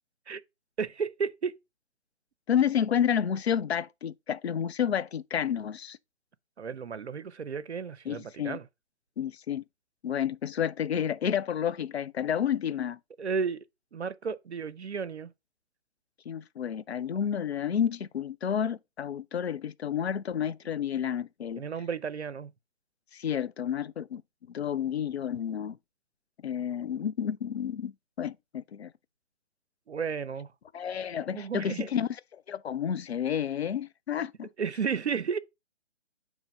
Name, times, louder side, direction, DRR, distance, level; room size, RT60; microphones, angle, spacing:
voice 1, 0.8-1.6 6.6-8.7 13.2-13.6 13.9-15.3 21.6-22.5 29.9-30.5 31.3-31.9 34.6-35.4, right 6 dB, 65° right, 0.7 m, -33 dB
voice 2, 2.5-6.0 8.1-8.6 9.2-9.6 10.0-13.0 16.3-21.6 23.1-24.2 24.5-25.8 26.4-28.9 30.7-34.5, left 8 dB, 60° left, 0.5 m, -30 dB
7.3 x 3.1 x 5.1 m
figure-of-eight pair, 140°, 36 cm